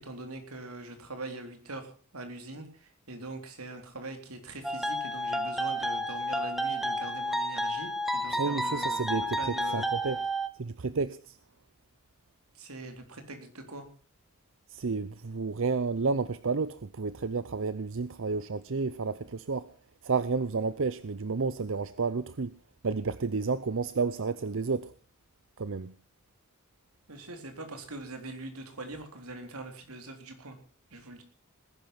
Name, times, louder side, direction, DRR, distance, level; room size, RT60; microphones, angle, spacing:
voice 1, 0.0-10.2 12.5-13.9 27.1-30.6 30.9-31.2, right 2 dB, 90° right, 3.7 m, -43 dB
sound 1, 4.6-10.5, equal, ahead, 1.0 m, -31 dB
voice 2, 8.3-9.4 9.7-10.2 10.6-11.4 14.7-19.7 20.0-22.5 22.8-24.9 25.6-25.9, right 4 dB, 65° right, 0.7 m, -31 dB
19.5 x 11.0 x 6.0 m
head